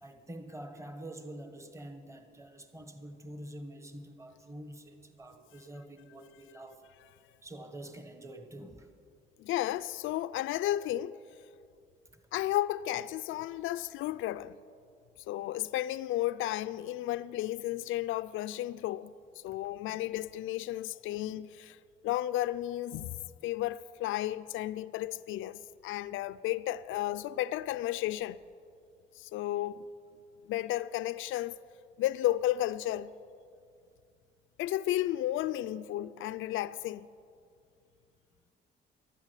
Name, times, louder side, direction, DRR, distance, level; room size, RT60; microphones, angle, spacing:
voice 1, 0.0-6.8 7.4-8.9 19.9-20.0, right 1 dB, 15° right, 1.4 m, -46 dB
voice 2, 9.4-11.2 12.3-14.6 15.3-21.8 22.0-28.4 29.1-29.9 30.5-31.6 32.0-33.1 34.6-37.1, left 14 dB, 85° left, 0.4 m, -33 dB
14.5 x 11.5 x 8.2 m
cardioid pair, 90°, 20 cm